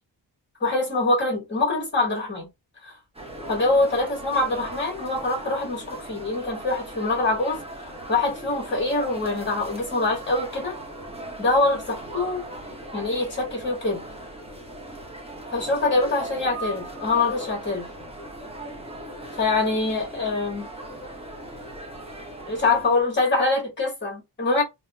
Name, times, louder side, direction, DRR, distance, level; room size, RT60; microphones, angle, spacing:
voice 1, 0.6-2.5 2.8-3.0 3.5-10.7 11.4-12.4 12.9-14.0 15.5-17.9 19.4-20.7 22.5-24.6, left 3 dB, 25° left, 1.5 m, -24 dB
sound 1, 3.1-23.1, right 1 dB, 15° right, 0.9 m, -38 dB
2.8 x 2.1 x 2.2 m
wide cardioid pair, 130°, 43 cm